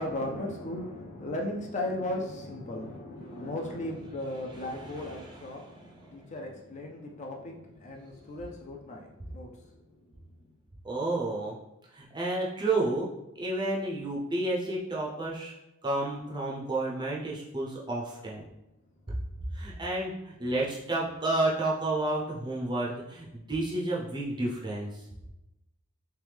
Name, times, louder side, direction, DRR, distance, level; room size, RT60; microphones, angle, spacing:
voice 1, 0.0-9.7, left 1 dB, 35° left, 1 dB, 0.4 m, -36 dB
voice 2, 4.4-6.1 8.4-8.5 10.8-11.6 11.9-13.1 13.4-15.5 15.8-18.4 19.1-19.2 19.5-25.0, right 2 dB, 20° right, -4 dB, 0.5 m, -31 dB
3.3 x 3.0 x 3.3 m, 0.92 s
head